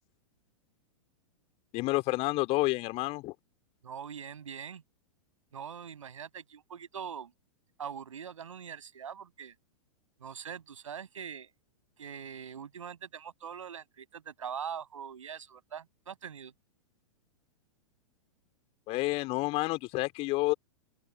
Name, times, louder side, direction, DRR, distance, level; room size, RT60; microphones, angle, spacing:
voice 1, 1.7-3.3 18.9-20.5, left 21 dB, 35° left, 3.6 m, -29 dB
voice 2, 3.8-4.8 5.5-7.3 7.8-9.5 10.2-11.5 12.0-16.5, right 7 dB, 70° right, 6.8 m, -42 dB
open air
figure-of-eight pair, 105°, 17 cm